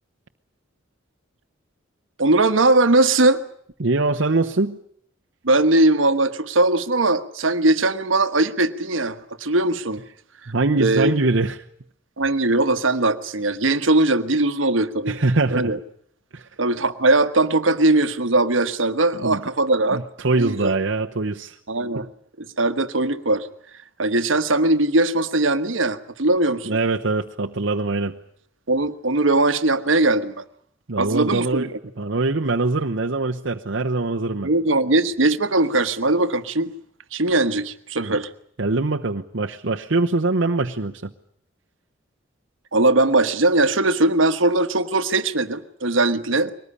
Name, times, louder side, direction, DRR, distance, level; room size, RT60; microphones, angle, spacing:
voice 1, 2.2-3.4 5.4-10.0 10.8-11.1 12.2-15.2 15.5-15.8 16.6-20.0 20.4-20.7 21.7-22.1 22.4-23.5 24.0-26.7 28.7-30.4 31.0-31.7 34.4-36.7 37.1-38.3 42.7-46.5, right 2 dB, 85° right, 11 dB, 1.4 m, -20 dB
voice 2, 3.8-4.8 10.5-11.6 15.1-15.7 16.3-16.5 19.2-19.4 19.9-21.6 21.9-22.0 26.6-28.2 30.9-31.7 32.0-34.5 38.0-38.2 38.6-41.1, right 3 dB, 65° right, 2 dB, 1.0 m, -23 dB
23.0 x 19.5 x 9.8 m, 0.67 s
head